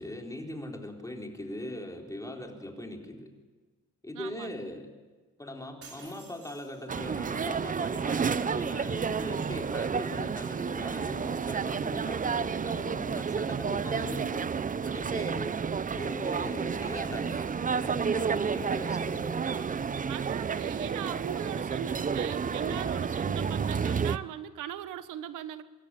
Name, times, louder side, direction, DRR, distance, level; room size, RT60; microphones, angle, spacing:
voice 1, 0.0-3.3 4.0-4.9 5.4-14.5 14.8-15.6 15.9-19.7, left 1 dB, 10° left, 2 dB, 3.9 m, -40 dB
voice 2, 4.1-4.7 20.1-25.6, right 11 dB, 90° right, 13 dB, 1.1 m, -39 dB
sound 1, 5.8-7.3, right 4 dB, 50° right, 4.3 m, -52 dB
sound 2, 6.9-24.2, right 6 dB, 25° right, 0.6 m, -31 dB
25.5 x 13.5 x 9.9 m, 1.3 s
cardioid pair, 90°, 30 cm